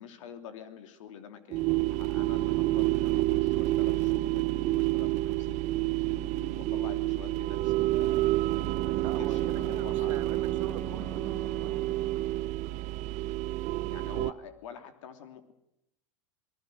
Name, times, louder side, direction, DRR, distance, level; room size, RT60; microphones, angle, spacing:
voice 1, 0.0-5.6 6.0-8.3 8.8-10.6 13.9-15.5, left 8 dB, 75° left, 9 dB, 3.0 m, -47 dB
sound 1, 1.5-14.3, right 18 dB, 45° right, 0.9 m, -29 dB
Bowed string instrument, 8.4-12.9, right 2 dB, 15° left, 3.7 m, -45 dB
voice 2, 9.0-12.0, right 12 dB, 80° right, 11 dB, 1.6 m, -43 dB
28.0 x 19.0 x 6.4 m, 0.78 s
hypercardioid pair, 100°, 17 cm